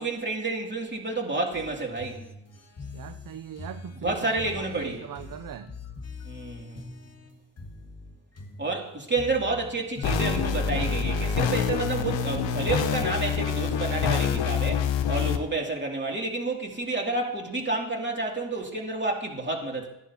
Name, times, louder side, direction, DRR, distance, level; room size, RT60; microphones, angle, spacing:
voice 1, 0.0-2.2 4.0-5.1 6.2-6.8 8.6-19.9, right 3 dB, 25° right, 0 dB, 2.9 m, -30 dB
sound 1, 1.5-12.0, left 4 dB, 30° left, 1.8 m, -43 dB
voice 2, 2.9-5.7, right 9 dB, 45° right, 11 dB, 0.7 m, -40 dB
sound 2, 10.0-15.4, left 7 dB, 70° left, 1.1 m, -26 dB
14.5 x 10.5 x 3.0 m, 0.83 s
supercardioid pair, 60°, 47 cm